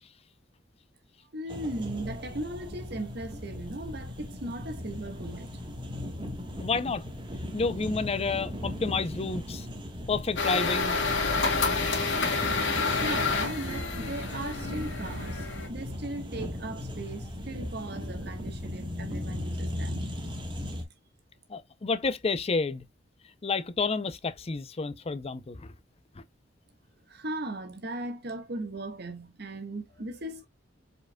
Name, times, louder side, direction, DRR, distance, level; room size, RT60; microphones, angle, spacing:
voice 1, 1.3-5.6 12.8-20.2 27.1-30.5, right 2 dB, 60° right, 1.3 m, -38 dB
sound 1, 1.5-20.8, left 1 dB, 25° right, 1.2 m, -37 dB
voice 2, 6.6-7.0 7.5-9.7 10.1-11.0 21.5-22.8 23.4-25.7, left 4 dB, 30° left, 0.5 m, -30 dB
sound 2, 10.4-15.7, left 4 dB, 80° left, 2.2 m, -29 dB
4.9 x 4.6 x 2.2 m
head